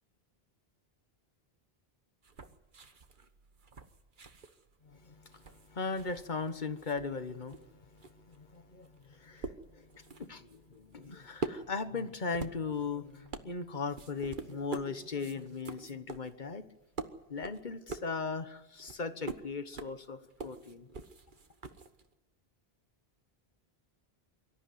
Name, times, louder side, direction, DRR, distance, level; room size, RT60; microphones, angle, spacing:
sound 1, 2.2-6.5 6.7-22.1, right 4 dB, 55° right, 1.4 m, -45 dB
voice 1, 4.8-16.7 17.0-20.9, left 4 dB, 50° left, 10 dB, 1.5 m, -38 dB
24.0 x 13.5 x 9.6 m, 1.1 s
omnidirectional pair, 1.0 m